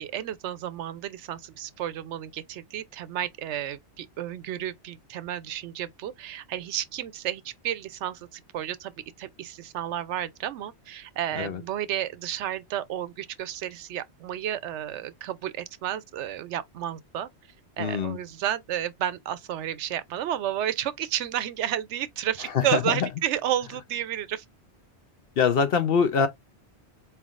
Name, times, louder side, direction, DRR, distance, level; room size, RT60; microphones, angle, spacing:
voice 1, 0.0-8.9 9.2-17.3 17.8-24.4, right 11 dB, 80° right, 0.9 m, -32 dB
voice 2, 17.8-18.2 22.5-23.0 25.4-26.3, left 6 dB, 60° left, 0.8 m, -23 dB
4.4 x 3.4 x 2.4 m
omnidirectional pair, 1.2 m